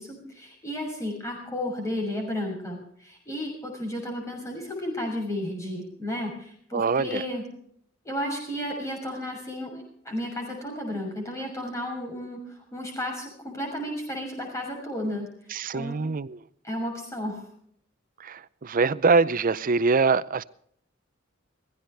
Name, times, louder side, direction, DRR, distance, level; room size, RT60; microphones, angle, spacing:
voice 1, 0.0-7.4 8.0-15.3 15.7-16.1 16.6-17.5, left 1 dB, 15° left, 6.5 m, -33 dB
voice 2, 6.7-7.2 15.5-16.4 18.2-20.4, right 4 dB, 45° right, 0.6 m, -24 dB
21.0 x 16.0 x 3.4 m
head